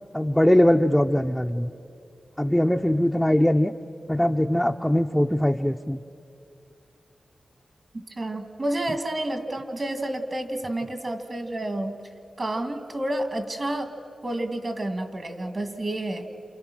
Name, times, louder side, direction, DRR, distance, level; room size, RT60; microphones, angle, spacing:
voice 1, 0.1-1.7 2.4-3.7 4.1-6.0, left 1 dB, 5° left, 2 dB, 0.6 m, -21 dB
voice 2, 8.2-12.0 12.4-14.0 14.2-16.3, right 1 dB, 45° right, 7 dB, 2.1 m, -30 dB
28.5 x 28.0 x 6.3 m, 2.7 s
cardioid pair, 65°, 0 cm